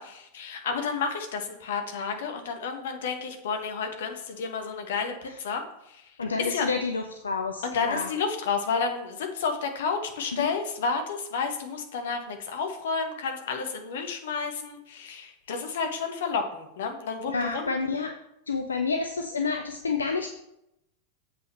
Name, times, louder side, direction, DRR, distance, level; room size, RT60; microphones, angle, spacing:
voice 1, 0.0-6.7 7.6-17.7, left 5 dB, 60° left, 5 dB, 1.5 m, -31 dB
voice 2, 6.2-8.1 10.3-10.5 17.3-18.1 18.5-20.3, left 4 dB, 75° left, 5 dB, 0.7 m, -29 dB
7.7 x 5.7 x 5.5 m, 0.82 s
figure-of-eight pair, 90°, 0 cm